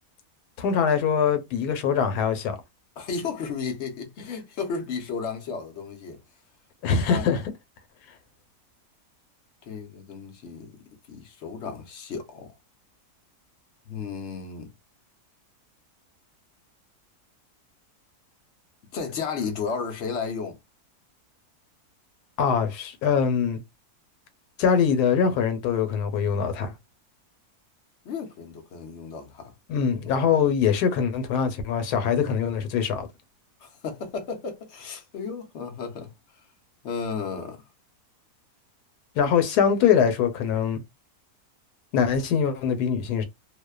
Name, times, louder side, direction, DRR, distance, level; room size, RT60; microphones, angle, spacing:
voice 1, 0.6-2.6 6.8-7.4 22.4-23.6 24.6-26.7 29.7-33.1 39.2-40.8 41.9-43.2, left 7 dB, 90° left, 1.2 m, -23 dB
voice 2, 3.0-6.2 7.1-7.4 9.7-10.7 11.1-12.5 13.9-14.7 18.9-20.6 28.0-29.5 33.6-36.1 36.8-37.7, left 5 dB, 60° left, 0.8 m, -33 dB
2.7 x 2.1 x 2.2 m
omnidirectional pair, 1.6 m